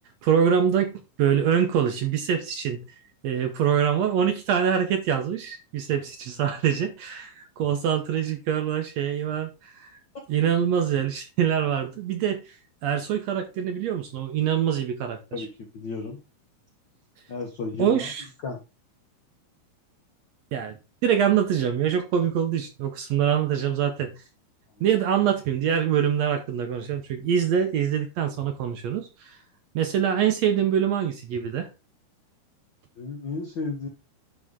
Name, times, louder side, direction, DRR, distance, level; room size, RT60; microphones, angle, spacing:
voice 1, 0.2-2.8 3.2-10.0 10.3-15.5 17.8-18.3 20.5-24.2 24.8-29.4 29.8-31.7, right 8 dB, 70° right, 1.8 m, -25 dB
voice 2, 15.7-16.2 17.3-18.1 18.4-18.6 24.8-24.9 33.0-33.9, left 3 dB, 65° left, 1.1 m, -33 dB
11.0 x 3.8 x 3.7 m
omnidirectional pair, 3.7 m